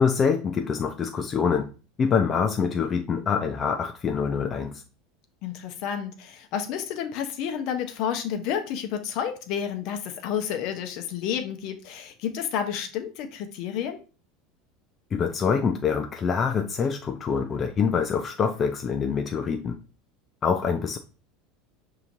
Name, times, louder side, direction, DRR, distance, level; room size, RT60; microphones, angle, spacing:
voice 1, 0.0-1.7 2.0-4.8 15.1-19.8 20.4-21.0, left 6 dB, 35° left, 5 dB, 0.4 m, -25 dB
voice 2, 5.4-14.0, left 8 dB, 60° left, 6 dB, 0.7 m, -30 dB
5.7 x 2.8 x 2.6 m, 0.35 s
hypercardioid pair, 85°, 0 cm